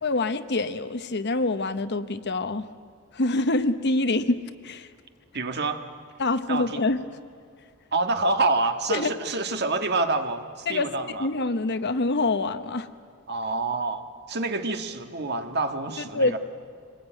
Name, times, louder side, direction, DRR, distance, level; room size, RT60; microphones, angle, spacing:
voice 1, 0.0-2.7 3.1-4.9 6.2-7.0 8.9-9.1 10.7-10.9 11.2-12.9 16.1-16.4, left 2 dB, 50° left, 11 dB, 1.0 m, -25 dB
voice 2, 5.3-5.8 6.5-6.8 7.9-11.3 13.3-16.4, right 3 dB, 50° right, 6 dB, 1.7 m, -27 dB
25.5 x 20.0 x 9.1 m, 2.2 s
head